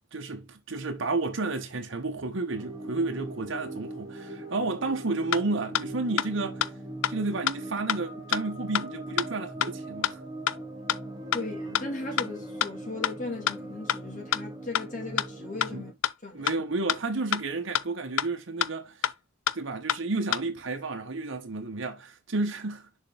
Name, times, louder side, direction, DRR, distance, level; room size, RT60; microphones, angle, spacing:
voice 1, 0.1-6.7 7.1-10.2 15.7-15.8 16.3-19.0 19.5-22.9, right 3 dB, 65° right, 1.0 m, -31 dB
sound 1, 2.5-15.9, right 1 dB, 20° right, 1.6 m, -40 dB
sound 2, 5.3-5.4 5.7-5.8 6.2-6.3 6.6-6.7 7.0-7.1 7.5-7.6 7.9-8.0 8.3-8.4 8.7-8.8 9.2-9.3 9.6-9.7 10.0-10.1 10.5-10.6 10.9-11.0 11.3-11.4 11.7-11.8 12.2-12.3 12.6-12.7 13.0-13.1 13.5-13.6 13.9-14.0 14.3-14.4 14.7-14.8 15.2-15.3 15.6-15.7 16.0-16.1 16.5-16.6 16.9-17.0 17.3-17.4 17.7-17.8 18.2-18.3 18.6-18.7 19.0-19.1 19.5-19.6 19.9-20.0 20.3-20.4, left 10 dB, 75° left, 0.4 m, -25 dB
voice 2, 11.3-15.9 16.2-16.5, left 2 dB, 40° left, 1.9 m, -37 dB
6.6 x 4.5 x 3.3 m
head